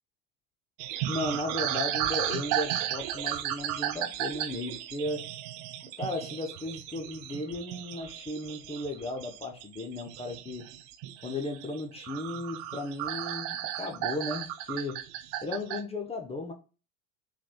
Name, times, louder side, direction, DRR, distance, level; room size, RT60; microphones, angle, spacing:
sound 1, 0.8-15.8, right 12 dB, 45° right, 0.5 m, -35 dB
voice 1, 1.1-5.3 6.0-10.7 11.2-15.0 15.4-16.5, left 2 dB, 15° left, 0.5 m, -35 dB
3.9 x 2.9 x 2.2 m
hypercardioid pair, 80°, 44 cm